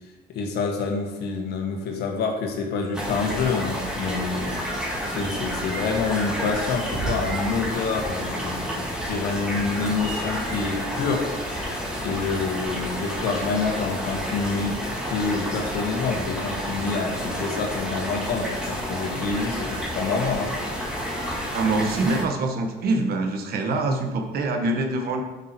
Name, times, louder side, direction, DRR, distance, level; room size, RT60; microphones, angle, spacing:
voice 1, 0.3-4.6 5.1-11.3 11.7-20.5, left 4 dB, 75° left, 2 dB, 1.6 m, -27 dB
sound 1, 2.9-22.2, equal, 5° right, 2.1 m, -30 dB
voice 2, 21.5-25.2, right 2 dB, 65° right, 4 dB, 1.3 m, -24 dB
8.2 x 5.9 x 4.5 m, 1.1 s
cardioid pair, 110°, 17 cm